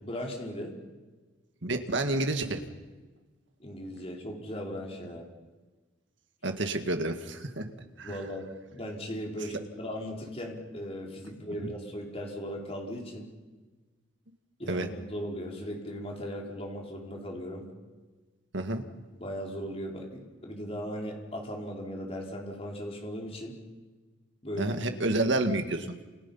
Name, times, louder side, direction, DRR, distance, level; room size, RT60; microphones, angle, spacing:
voice 1, 0.0-0.8 3.6-5.2 8.0-13.3 14.6-17.7 19.2-23.6 24.4-24.8 25.1-25.2, equal, 30° left, 0 dB, 4.5 m, -38 dB
voice 2, 1.6-2.6 6.4-7.7 8.0-8.2 14.7-14.9 18.5-18.8 24.6-26.0, right 2 dB, 65° right, 6 dB, 2.0 m, -29 dB
29.5 x 28.0 x 5.8 m, 1.3 s
head